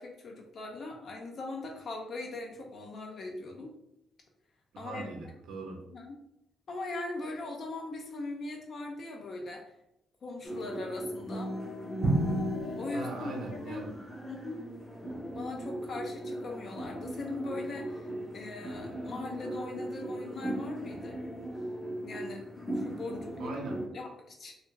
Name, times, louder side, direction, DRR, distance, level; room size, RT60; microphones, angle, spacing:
voice 1, 0.0-3.7 4.8-5.1 5.9-6.2 6.7-9.6 10.2-11.6 12.8-13.9 14.2-14.6 15.3-21.2 22.0-23.5 23.9-24.5, left 2 dB, 50° left, 1 dB, 0.4 m, -40 dB
voice 2, 4.7-5.8 12.9-13.9 23.4-23.8, right 2 dB, 85° right, 1 dB, 0.6 m, -40 dB
sound 1, 10.4-23.9, right 1 dB, 15° left, 0.7 m, -38 dB
Drum, 12.0-14.0, right 1 dB, 55° right, 1.0 m, -32 dB
2.3 x 2.2 x 3.0 m, 0.81 s
cardioid pair, 125°, 0 cm